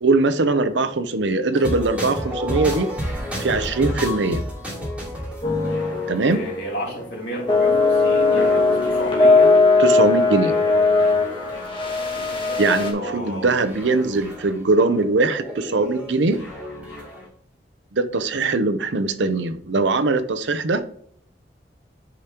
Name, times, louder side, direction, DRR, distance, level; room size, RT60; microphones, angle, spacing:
voice 1, 0.0-2.9 3.4-4.4 6.1-6.4 9.8-10.5 12.6-16.4 17.9-20.8, right 3 dB, 90° right, 10 dB, 0.7 m, -21 dB
sound 1, 1.5-17.3, equal, 10° right, 3.0 m, -33 dB
sound 2, 5.4-6.2 6.5-6.7 7.5-12.9, left 3 dB, 30° left, 1.3 m, -18 dB
voice 2, 6.3-9.6 10.4-11.0 12.9-13.5, equal, 75° left, -4 dB, 3.3 m, -32 dB
10.0 x 5.0 x 2.9 m, 0.63 s
head